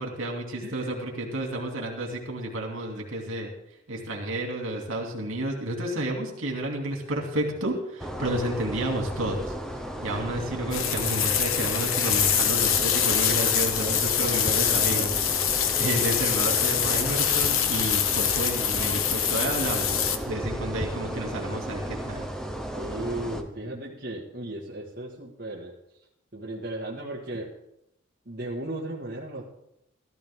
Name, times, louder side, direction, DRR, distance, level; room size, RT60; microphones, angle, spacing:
voice 1, 0.0-3.5 3.9-9.5 10.0-15.2 15.5-22.2, right 1 dB, 75° right, 1 dB, 2.6 m, -31 dB
voice 2, 0.6-0.9 14.3-15.6 22.7-25.7 26.3-27.5 28.2-29.4, right 1 dB, 45° right, -3 dB, 1.7 m, -36 dB
sound 1, 8.0-23.4, equal, 5° left, 0.8 m, -34 dB
sound 2, 10.7-20.2, left 9 dB, 80° left, 1.0 m, -25 dB
14.0 x 14.0 x 3.6 m, 0.82 s
head